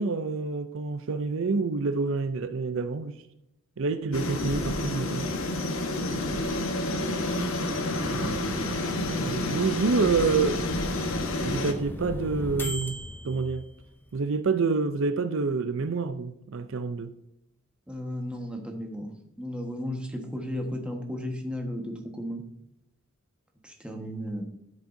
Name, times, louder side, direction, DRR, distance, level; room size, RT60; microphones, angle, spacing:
voice 1, 0.0-3.2 3.8-5.3 5.9-6.5 8.0-10.6 11.4-13.7 14.1-17.1, right 4 dB, 65° right, 0.5 m, -28 dB
sound 1, 4.1-11.7, left 2 dB, 70° left, 1.2 m, -29 dB
sound 2, 7.7-14.2, equal, 10° left, 0.6 m, -38 dB
voice 2, 17.9-19.1 19.4-22.4 23.6-24.4, equal, 5° right, 1.3 m, -34 dB
12.5 x 7.4 x 2.7 m
head